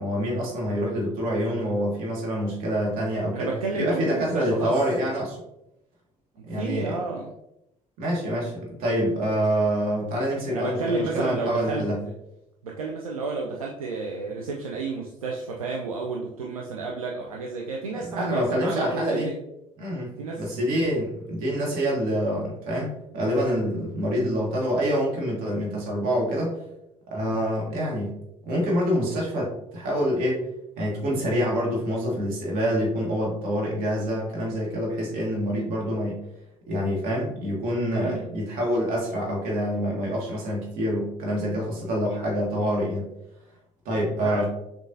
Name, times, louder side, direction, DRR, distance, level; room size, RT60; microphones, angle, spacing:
voice 1, 0.0-5.4 6.5-7.0 8.0-12.0 18.1-19.3 19.8-26.6 27.1-28.1 28.5-30.5 30.8-36.2 36.7-43.0 43.8-44.5, equal, 55° right, -2 dB, 1.3 m, -26 dB
voice 2, 3.3-4.7 6.4-7.3 10.5-11.8 12.6-19.3 19.9-20.4 38.0-38.3 43.9-44.5, right 3 dB, 80° right, 0 dB, 0.4 m, -31 dB
6.3 x 2.4 x 2.6 m, 0.84 s
figure-of-eight pair, 55°, 18 cm